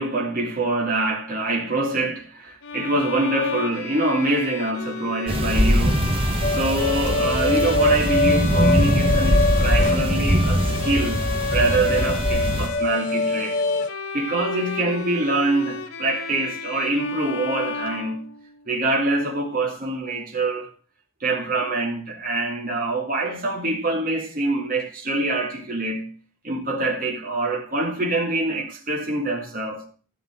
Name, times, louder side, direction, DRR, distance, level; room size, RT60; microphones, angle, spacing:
voice 1, 0.0-6.0 6.5-13.6 14.1-18.3 18.7-20.7 21.2-26.1 26.4-29.9, right 2 dB, 40° right, 2.7 m, -25 dB
Bowed string instrument, 2.6-18.6, left 4 dB, 85° left, 1.7 m, -32 dB
sound 1, 5.3-12.7, equal, 25° right, 1.6 m, -22 dB
sound 2, 6.4-13.9, left 3 dB, 35° left, 1.1 m, -25 dB
13.5 x 6.5 x 7.5 m
head